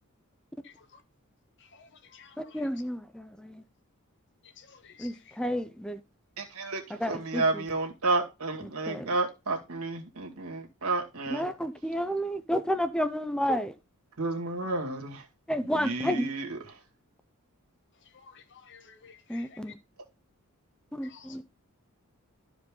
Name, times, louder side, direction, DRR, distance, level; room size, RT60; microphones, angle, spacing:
voice 1, 1.7-2.3 4.6-5.1 18.1-19.4 21.1-21.3, left 6 dB, 55° left, 1.1 m, -53 dB
voice 2, 2.4-3.6 5.0-6.0 6.9-7.6 8.6-9.1 11.3-13.7 15.5-16.3 19.3-19.8 20.9-21.4, equal, 5° left, 0.6 m, -31 dB
voice 3, 6.4-11.4 14.2-15.3 15.8-16.6, right 3 dB, 80° right, 2.2 m, -31 dB
12.0 x 4.9 x 3.8 m
head